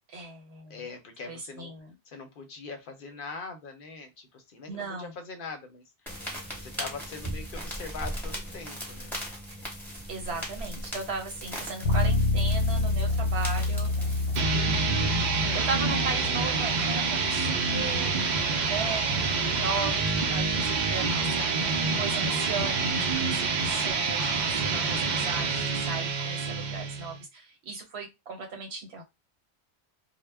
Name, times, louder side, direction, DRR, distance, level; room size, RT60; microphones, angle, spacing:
voice 1, 0.1-0.9 1.2-1.9 4.7-5.1 10.1-14.2 14.5-15.1 15.5-18.1 18.7-19.1 19.5-21.5 21.9-29.0, right 4 dB, 70° right, 3 dB, 1.0 m, -37 dB
voice 2, 0.7-1.7 2.1-5.8 6.5-9.1 21.8-22.5, left 4 dB, 60° left, 6 dB, 0.7 m, -42 dB
sound 1, 6.1-14.4, equal, ahead, 0.9 m, -38 dB
Bass guitar, 11.8-21.6, left 3 dB, 80° left, 0.9 m, -30 dB
sound 2, 14.4-27.2, right 4 dB, 55° right, 0.5 m, -27 dB
2.1 x 2.0 x 3.3 m, 0.22 s
omnidirectional pair, 1.1 m